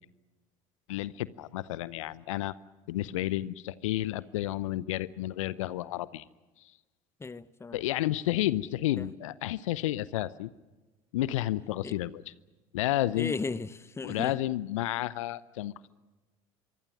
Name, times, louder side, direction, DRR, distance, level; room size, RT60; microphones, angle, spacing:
voice 1, 0.9-2.5 2.9-6.2 7.7-10.5 11.1-12.2 12.7-13.3 14.0-15.9, left 15 dB, 70° left, 0.7 m, -31 dB
voice 2, 7.2-7.8 9.0-9.1 11.8-11.9 13.1-14.3, left 4 dB, 15° left, 0.9 m, -35 dB
25.5 x 24.5 x 6.3 m
figure-of-eight pair, 65°, 17 cm